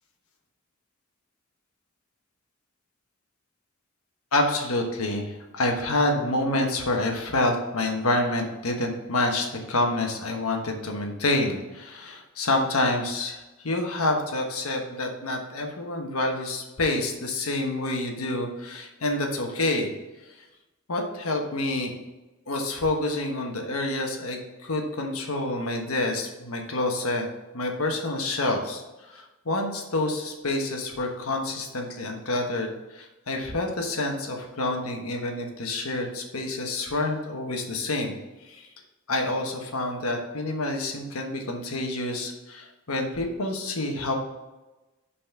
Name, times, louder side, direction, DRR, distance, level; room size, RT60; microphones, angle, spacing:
voice 1, 4.3-19.9 20.9-21.9 22.5-27.3 27.5-38.2 38.5-38.7 39.1-44.1, left 2 dB, 90° left, 2 dB, 1.2 m, -28 dB
5.6 x 4.2 x 5.7 m, 1.1 s
head